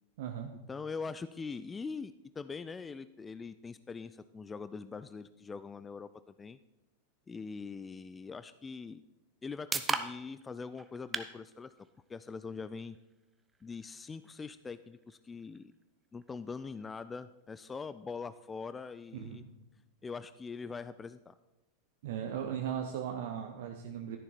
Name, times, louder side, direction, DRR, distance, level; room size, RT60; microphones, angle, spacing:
voice 1, 0.2-0.5 19.2-19.5 22.0-24.2, right 9 dB, 55° right, 4 dB, 0.9 m, -37 dB
voice 2, 0.7-6.6 7.3-9.0 9.4-11.7 12.1-13.0 13.6-15.7 16.1-19.4 20.0-21.4, left 5 dB, 15° left, 14 dB, 0.3 m, -42 dB
sound 1, 9.0-22.9, right 4 dB, 15° right, 0.7 m, -45 dB
12.5 x 10.5 x 4.3 m, 1.0 s
figure-of-eight pair, 90°, 0 cm